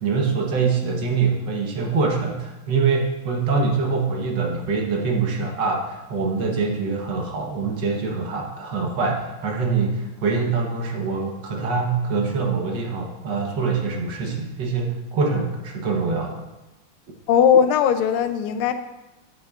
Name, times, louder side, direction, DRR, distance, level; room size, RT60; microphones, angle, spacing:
voice 1, 0.0-16.4, right 4 dB, 60° right, 0 dB, 1.6 m, -24 dB
voice 2, 17.3-18.7, left 8 dB, 90° left, 10 dB, 1.5 m, -18 dB
10.5 x 8.0 x 2.4 m, 1.1 s
omnidirectional pair, 2.3 m